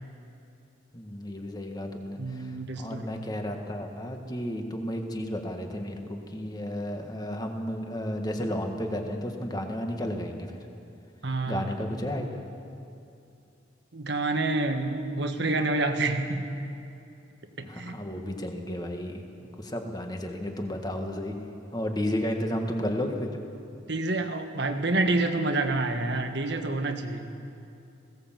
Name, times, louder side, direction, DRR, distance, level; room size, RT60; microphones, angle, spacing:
voice 1, 0.9-10.5 11.5-12.4 17.6-19.2 19.6-21.4 21.7-23.4, left 1 dB, 20° left, 3 dB, 1.7 m, -33 dB
voice 2, 2.2-3.3 11.2-11.7 13.9-16.6 17.6-17.9 23.9-27.3, right 2 dB, 60° right, 6 dB, 1.6 m, -28 dB
20.0 x 17.5 x 7.6 m, 2.7 s
head